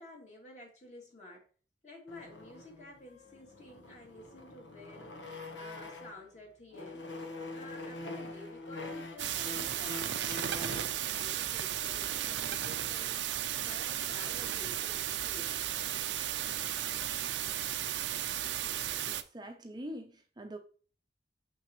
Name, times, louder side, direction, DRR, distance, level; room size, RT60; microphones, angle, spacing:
voice 1, 0.0-1.4 1.8-5.2 5.5-7.0 7.5-13.1 13.6-15.5, left 2 dB, 40° left, 2.7 m, -51 dB
sound 1, 2.1-6.3 6.7-11.0, left 2 dB, 80° left, 1.1 m, -44 dB
sound 2, 9.2-19.2, right 11 dB, 75° right, 0.5 m, -34 dB
voice 2, 19.1-20.6, equal, 25° right, 0.6 m, -44 dB
6.9 x 5.9 x 3.0 m
head